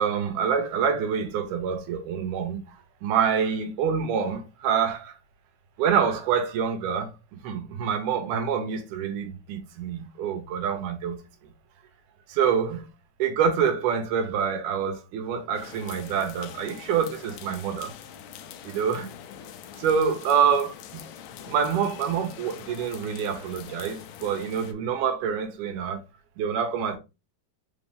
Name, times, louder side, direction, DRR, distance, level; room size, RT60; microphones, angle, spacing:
voice 1, 0.0-2.6 3.0-5.2 5.8-11.2 12.3-12.9 13.2-17.9 18.6-19.1 19.8-21.0 21.5-26.0 26.4-27.0, right 7 dB, 90° right, 2.4 m, -26 dB
sound 1, 15.6-24.7, left 9 dB, 80° left, 1.7 m, -44 dB
5.3 x 2.6 x 3.3 m
omnidirectional pair, 3.5 m